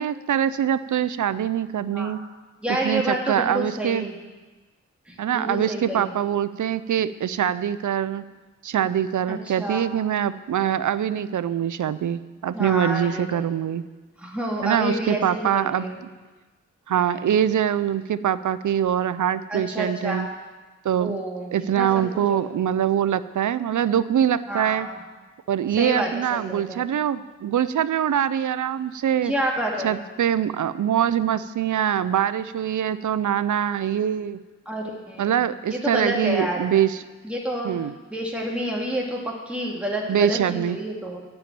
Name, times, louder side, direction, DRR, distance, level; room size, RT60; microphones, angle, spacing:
voice 1, 0.0-2.2 2.8-4.1 5.2-8.2 8.6-13.8 14.6-15.8 16.9-20.3 20.8-21.2 21.5-24.9 25.5-29.3 29.8-34.4 35.2-37.0 37.6-37.9 40.1-40.8, right 9 dB, 85° right, 15 dB, 0.5 m, -23 dB
voice 2, 1.8-2.1 2.6-4.1 5.1-6.1 9.3-9.9 12.5-13.4 14.2-16.0 16.9-17.4 19.5-20.3 21.0-21.5 21.8-21.9 22.3-22.4 24.5-25.0 25.8-26.8 29.2-30.0 34.7-35.4 35.7-36.6 37.2-37.7 38.1-41.2, right 1 dB, 5° right, -2 dB, 2.3 m, -29 dB
10.5 x 7.1 x 8.9 m, 1.2 s
cardioid pair, 40°, 29 cm